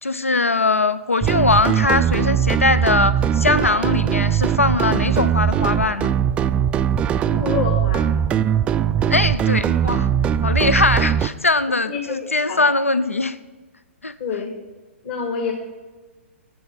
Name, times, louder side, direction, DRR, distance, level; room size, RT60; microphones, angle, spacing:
voice 1, 0.0-6.1 9.1-10.1 10.4-13.4 14.0-14.1, left 3 dB, 90° left, 14 dB, 0.6 m, -20 dB
So Low Mastered, 1.2-11.3, right 9 dB, 15° right, 0.3 m, -20 dB
voice 2, 7.3-8.1 11.9-12.2 12.5-12.6 14.2-14.5 15.0-15.5, left 6 dB, 50° left, 0 dB, 2.1 m, -26 dB
11.0 x 8.1 x 6.8 m, 1.3 s
figure-of-eight pair, 120°, 7 cm